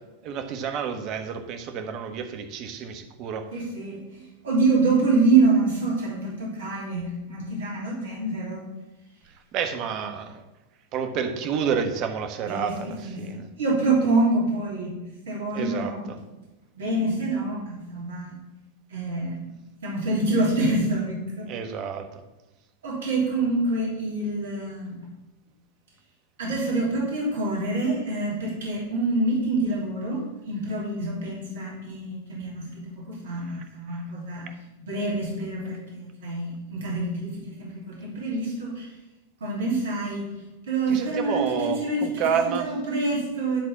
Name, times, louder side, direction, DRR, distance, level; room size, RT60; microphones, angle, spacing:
voice 1, 0.2-3.5 9.5-10.4 10.9-13.5 15.5-16.2 21.5-22.2 40.9-42.7, right 7 dB, 45° right, 7 dB, 1.3 m, -29 dB
voice 2, 3.5-8.6 12.5-15.0 15.3-16.0 16.7-18.4 18.9-19.4 19.8-21.5 22.8-25.0 26.4-30.2 30.4-34.5 34.8-38.9 39.4-40.3 40.7-43.6, right 2 dB, 70° right, -3 dB, 3.0 m, -26 dB
10.5 x 4.1 x 7.1 m, 1.1 s
hypercardioid pair, 100°, 0 cm